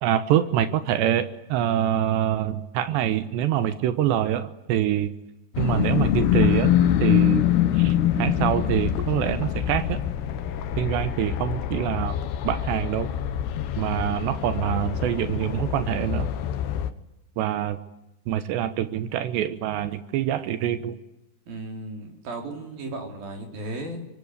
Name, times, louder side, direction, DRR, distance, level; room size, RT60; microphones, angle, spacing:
voice 1, 0.0-5.1 5.6-6.7 7.0-7.4 7.7-10.0 10.8-12.2 12.4-13.1 13.8-16.3 17.4-17.8 18.3-21.0, right 11 dB, 80° right, 11 dB, 3.3 m, -25 dB
sound 1, 5.6-16.9, left 11 dB, 75° left, 3.3 m, -24 dB
voice 2, 21.5-24.1, right 2 dB, 55° right, 3 dB, 5.8 m, -35 dB
24.5 x 22.5 x 9.7 m, 0.92 s
omnidirectional pair, 5.0 m